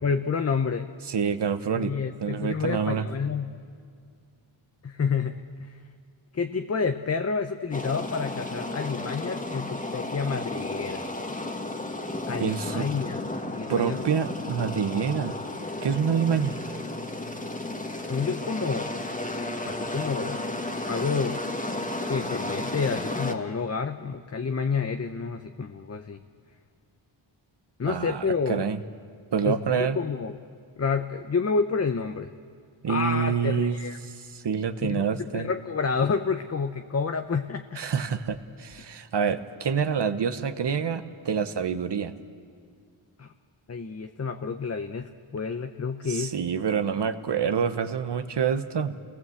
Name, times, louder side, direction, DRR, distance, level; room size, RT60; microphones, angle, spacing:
voice 1, 0.0-0.9 1.7-3.6 4.8-5.8 6.3-11.1 12.3-13.3 13.5-14.0 18.0-19.0 19.7-20.4 20.8-21.4 22.1-26.2 27.8-28.7 29.4-30.4 30.8-32.3 32.9-34.0 34.8-37.8 43.2-43.3 43.7-46.4, left 5 dB, 30° left, 7 dB, 0.8 m, -29 dB
voice 2, 1.1-1.9 2.2-3.1 12.4-12.9 13.7-15.4 15.8-16.6 27.9-28.8 29.3-30.0 32.8-33.8 34.3-35.5 37.8-42.1 46.1-49.0, right 6 dB, 55° right, 10 dB, 1.2 m, -27 dB
sound 1, 7.7-23.3, left 2 dB, 15° left, 1.7 m, -33 dB
27.5 x 19.0 x 7.9 m, 2.2 s
cardioid pair, 80°, 49 cm